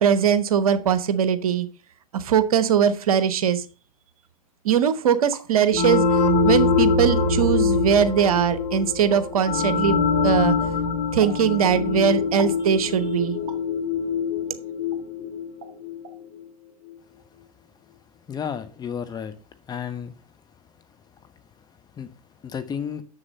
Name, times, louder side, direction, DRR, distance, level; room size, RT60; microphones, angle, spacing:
voice 1, 0.0-1.7 2.1-3.6 4.6-6.2 6.4-10.5 11.1-13.4, right 8 dB, 70° right, 13 dB, 1.1 m, -21 dB
sound 1, 5.3-5.5 6.4-6.5 7.3-7.5 9.1-9.2 11.2-11.4 12.4-12.6 13.5-13.7 14.9-15.0 15.6-15.8 16.0-16.2, right 6 dB, 45° right, 2.4 m, -40 dB
sound 2, 5.7-16.2, left 4 dB, 50° left, 1.7 m, -23 dB
voice 2, 18.3-19.3 19.7-20.1 22.0-22.1 22.4-23.0, left 7 dB, 20° left, 9 dB, 1.2 m, -31 dB
7.1 x 6.9 x 5.4 m, 0.35 s
hypercardioid pair, 100°, 19 cm